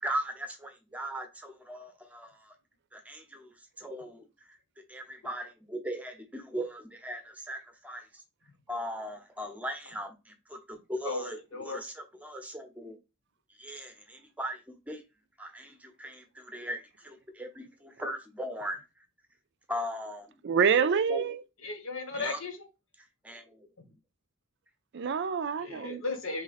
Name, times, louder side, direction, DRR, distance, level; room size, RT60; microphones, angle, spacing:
voice 1, 0.0-2.5 2.9-4.6 4.9-8.1 8.7-11.4 11.6-13.0 13.6-14.6 14.9-15.0 15.4-18.8 19.7-20.4 21.1-21.2 22.2-22.4 23.2-23.7, equal, 5° right, 0.8 m, -39 dB
voice 2, 11.0-11.8 21.6-22.6 25.6-26.4, left 3 dB, 70° left, 1.2 m, -35 dB
voice 3, 20.4-21.4 24.9-26.0, right 6 dB, 55° right, 0.4 m, -26 dB
4.0 x 3.3 x 4.0 m
head